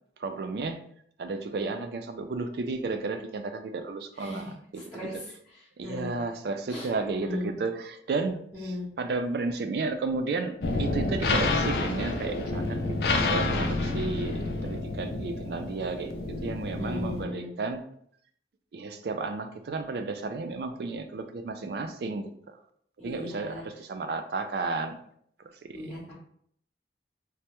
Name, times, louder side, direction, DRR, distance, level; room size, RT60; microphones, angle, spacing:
voice 1, 0.2-0.8 1.2-4.8 5.8-12.8 13.2-17.8 18.7-22.3 23.0-25.0 25.7-25.8, right 3 dB, 65° right, 8 dB, 0.3 m, -33 dB
voice 2, 4.1-6.2 6.7-7.5 8.5-8.9 16.8-17.5 23.0-23.6 25.7-26.1, left 2 dB, 5° left, -9 dB, 0.6 m, -37 dB
sound 1, 10.6-17.2, left 2 dB, 65° left, 0.4 m, -29 dB
3.3 x 2.1 x 2.9 m, 0.66 s
head